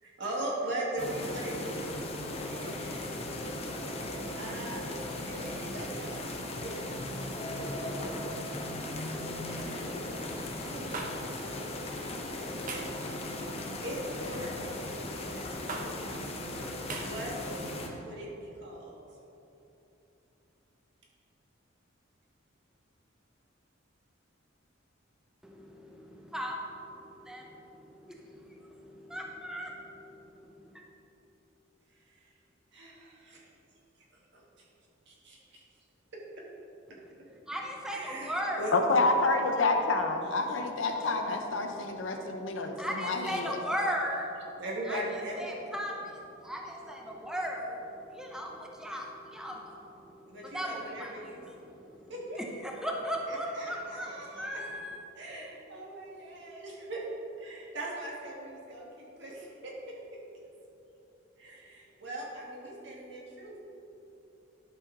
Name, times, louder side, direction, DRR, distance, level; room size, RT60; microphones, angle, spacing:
voice 1, 0.0-2.0 2.4-3.2 4.4-4.9 5.2-6.8 9.4-10.0 10.5-11.1 13.8-16.5 17.0-17.4 18.0-18.9 32.1-32.3 32.7-33.4 34.3-34.6 35.1-35.6 37.9-38.7 44.6-45.5 50.3-51.4 52.1-52.4 53.3-54.6 55.1-57.1 57.4-59.7 61.4-63.6, right 1 dB, 60° right, -3 dB, 1.8 m, -40 dB
sound 1, 1.0-17.9, left 1 dB, 30° left, 0.8 m, -37 dB
sound 2, 10.9-11.1 12.7-13.0 14.3-14.6 15.7-15.9 16.9-17.1, right 3 dB, 40° right, 0.9 m, -37 dB
voice 2, 25.4-30.8 36.9-38.6 40.9-41.1 41.7-42.1 42.8-45.0 45.4-55.0, equal, 5° right, 0 dB, 0.7 m, -38 dB
voice 3, 38.7-43.6, left 3 dB, 70° left, 5 dB, 0.8 m, -28 dB
11.0 x 6.0 x 3.8 m, 3.0 s
head